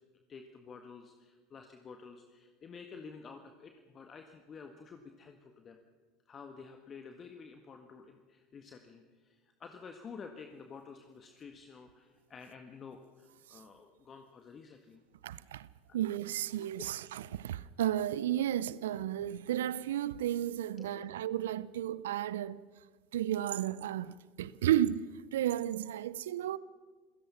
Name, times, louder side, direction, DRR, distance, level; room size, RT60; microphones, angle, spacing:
voice 1, 0.1-5.8 6.2-15.0 15.9-16.0 20.8-20.9, left 5 dB, 35° left, 1.6 m, -50 dB
voice 2, 15.2-15.7 15.9-22.6 23.1-26.6, right 12 dB, 75° right, 0.6 m, -33 dB
28.0 x 16.5 x 5.7 m
hypercardioid pair, 75°, 0 cm